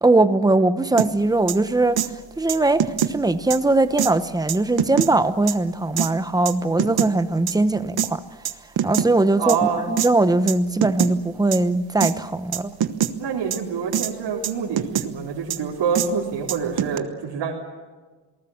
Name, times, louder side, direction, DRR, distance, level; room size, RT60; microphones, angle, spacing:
voice 1, 0.0-2.0 2.4-8.2 8.8-9.6 9.9-12.7, right 2 dB, 10° right, 0.9 m, -20 dB
sound 1, 1.0-1.1 1.5-1.6 2.0-2.1 2.5-3.1 3.5-3.6 4.0-4.1 4.5-5.1 5.5-5.6 6.0-6.1 6.5-7.1 7.5-7.6 8.0-8.1 8.4-9.1 9.5-9.6 10.0-10.1 10.5-10.6 10.8-11.1 11.5-11.6 12.0-12.1 12.5-13.1 13.5-13.6 13.9-14.1 14.4-15.1 15.5-15.6 15.9-16.1 16.5-17.0, right 9 dB, 60° right, 1.2 m, -23 dB
voice 2, 9.4-9.9 13.2-17.5, right 6 dB, 85° right, 3.8 m, -26 dB
28.0 x 19.5 x 7.2 m
wide cardioid pair, 155°, 42 cm